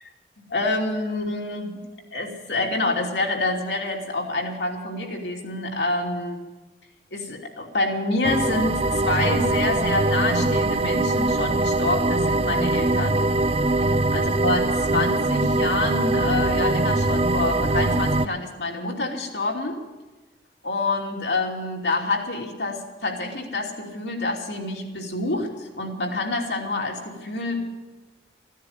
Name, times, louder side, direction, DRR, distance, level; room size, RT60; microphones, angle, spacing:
voice 1, 0.5-1.8 2.1-6.4 7.1-13.3 14.1-19.8 20.6-27.7, left 2 dB, 85° left, 0 dB, 2.8 m, -27 dB
sound 1, 8.2-18.3, right 2 dB, 35° right, 0.4 m, -22 dB
15.5 x 10.5 x 9.0 m, 1.2 s
head